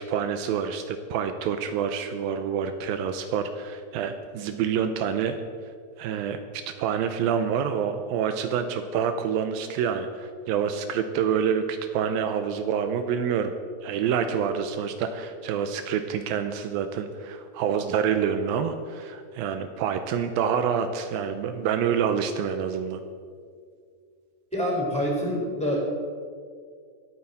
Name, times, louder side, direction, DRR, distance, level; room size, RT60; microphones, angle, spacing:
voice 1, 0.1-5.4 6.0-13.5 13.8-23.0, right 7 dB, 85° right, 8 dB, 2.1 m, -27 dB
voice 2, 24.5-25.8, equal, ahead, -4 dB, 3.3 m, -26 dB
25.0 x 8.9 x 4.2 m, 2.1 s
omnidirectional pair, 4.9 m